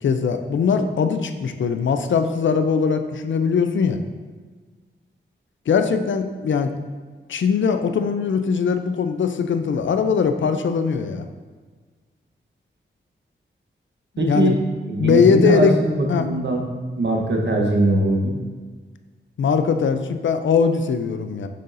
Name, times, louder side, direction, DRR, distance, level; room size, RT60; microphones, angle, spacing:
voice 1, 0.0-4.0 5.7-6.7 7.3-11.3 14.3-14.6 15.0-15.8 16.1-16.3 19.4-21.5, left 6 dB, 70° left, 8 dB, 0.5 m, -20 dB
voice 2, 14.2-14.5 14.9-16.6 17.0-18.3, right 2 dB, 60° right, 0 dB, 1.1 m, -20 dB
6.5 x 5.5 x 2.6 m, 1.5 s
wide cardioid pair, 85°, 20 cm